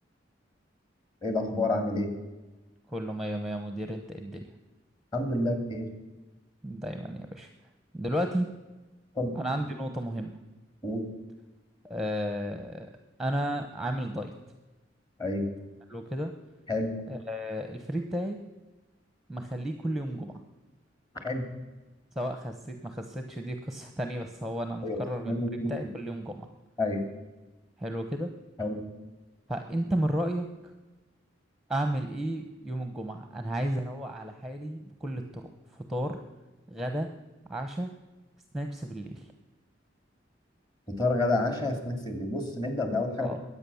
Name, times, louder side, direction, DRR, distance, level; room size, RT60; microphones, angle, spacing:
voice 1, 1.2-2.1 5.1-5.9 9.1-9.4 10.8-11.1 15.2-15.5 16.7-17.0 21.2-21.5 24.8-25.0 25.3-25.7 26.8-27.0 28.6-28.8 40.9-43.3, left 2 dB, 25° left, 5 dB, 2.6 m, -29 dB
voice 2, 2.9-4.5 6.6-7.5 7.9-8.5 9.3-10.4 11.8-12.9 13.2-14.3 15.9-16.3 17.1-18.4 19.3-20.3 22.1-25.3 25.7-26.5 27.8-28.3 29.5-30.5 31.7-36.2 36.7-37.1 37.5-37.9 38.5-39.3 43.2-43.4, equal, ahead, 6 dB, 0.9 m, -33 dB
22.0 x 8.5 x 7.1 m, 1.1 s
head